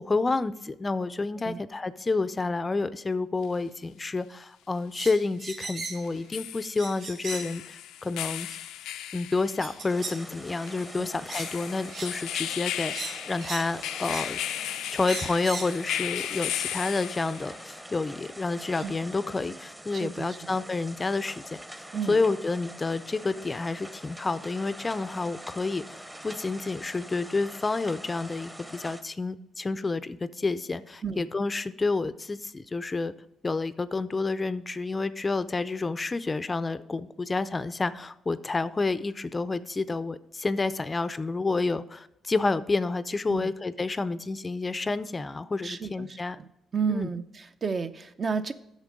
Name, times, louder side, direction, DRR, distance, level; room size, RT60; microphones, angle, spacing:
voice 1, 0.0-8.5 9.1-14.4 14.9-33.1 33.4-46.4 46.9-47.1, left 3 dB, 25° left, 14 dB, 0.4 m, -29 dB
sound 1, 3.4-3.5 6.0-17.6, left 12 dB, 90° left, 0.4 m, -36 dB
sound 2, 4.9-6.1 6.6-7.6 8.5-8.6 9.6-10.2 10.6-10.8 11.3-11.5 11.9-12.1 12.4-12.5 12.9-13.7 14.1-14.3 15.0-15.8 16.8-16.9 18.1-18.2 18.7-18.8, right 4 dB, 65° right, 1.7 m, -38 dB
sound 3, 9.9-29.0, right 1 dB, 10° right, 0.8 m, -44 dB
voice 2, 19.9-20.6 21.9-22.2 31.0-31.3 43.3-43.5 45.6-46.5 46.7-48.5, right 6 dB, 40° right, 10 dB, 0.6 m, -32 dB
8.2 x 6.5 x 5.1 m, 0.84 s
cardioid pair, 90°, 0 cm